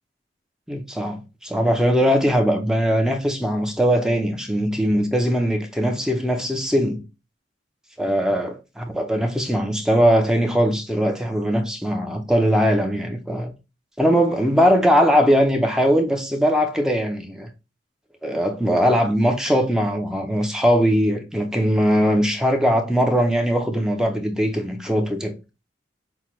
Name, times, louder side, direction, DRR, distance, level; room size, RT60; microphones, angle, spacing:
voice 1, 0.7-7.0 8.0-13.5 14.0-17.5 18.2-25.3, equal, 5° right, 0.6 m, -20 dB
5.7 x 2.2 x 3.1 m
head